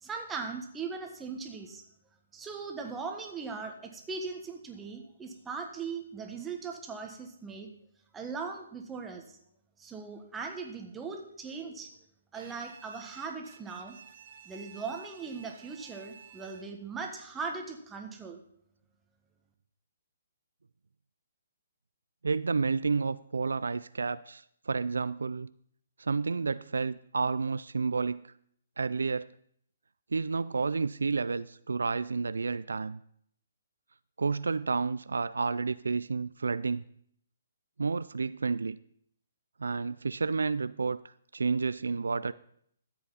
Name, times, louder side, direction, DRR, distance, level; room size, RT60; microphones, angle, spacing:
voice 1, 0.0-1.8 2.3-7.7 8.1-9.4 9.8-11.9 12.3-14.0 14.4-18.4, right 4 dB, 10° right, 2 dB, 1.4 m, -39 dB
Bowed string instrument, 12.3-16.9, right 7 dB, 50° right, 1.0 m, -52 dB
voice 2, 22.2-25.5 26.0-28.3 28.8-29.3 30.1-33.0 34.2-36.8 37.8-38.8 39.6-41.0 41.3-42.3, right 4 dB, 80° right, 16 dB, 0.3 m, -30 dB
13.0 x 8.1 x 4.1 m, 0.66 s
hypercardioid pair, 140°, 0 cm